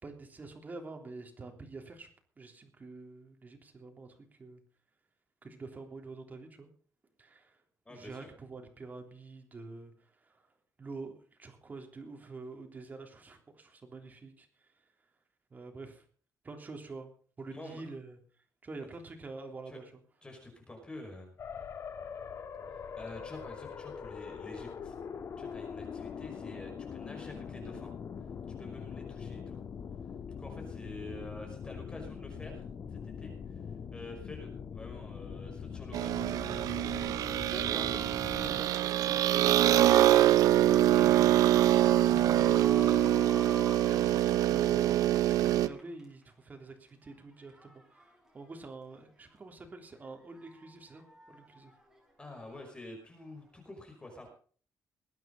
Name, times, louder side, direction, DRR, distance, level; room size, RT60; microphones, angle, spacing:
voice 1, 0.0-2.1 2.4-4.6 5.4-6.7 7.2-7.6 7.9-10.5 10.8-14.8 15.5-16.0 16.4-17.1 17.4-18.2 18.6-19.8 37.1-40.3 42.1-51.7, right 3 dB, 30° right, 4 dB, 3.4 m, -47 dB
voice 2, 7.9-8.3 17.5-17.8 19.7-19.8 20.2-21.3 22.7-25.0 25.4-27.9 28.2-28.3 28.6-29.6 30.4-32.6 32.9-33.7 33.9-36.3 43.8-44.0 52.2-54.3, left 1 dB, 15° left, 2 dB, 5.5 m, -48 dB
sound 1, 21.4-38.6, left 6 dB, 50° left, 1.7 m, -43 dB
sound 2, 35.9-45.7, right 13 dB, 85° right, 0.8 m, -25 dB
sound 3, 39.9-46.4 46.9-49.4 49.9-52.7 53.6-53.7, right 1 dB, 10° right, 6.8 m, -52 dB
21.0 x 9.3 x 5.3 m, 0.43 s
cardioid pair, 130°, 6 cm